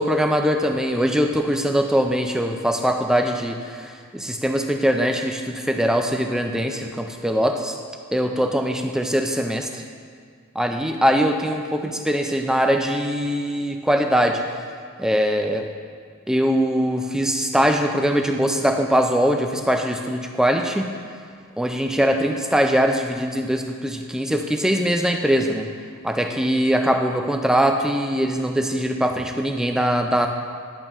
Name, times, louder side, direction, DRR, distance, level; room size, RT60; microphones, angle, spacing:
voice 1, 0.0-7.8 8.1-9.8 10.6-14.4 15.0-15.7 16.3-20.9 21.6-25.7 26.0-30.3, equal, 5° right, 4 dB, 0.3 m, -22 dB
10.5 x 6.7 x 3.0 m, 2.1 s
head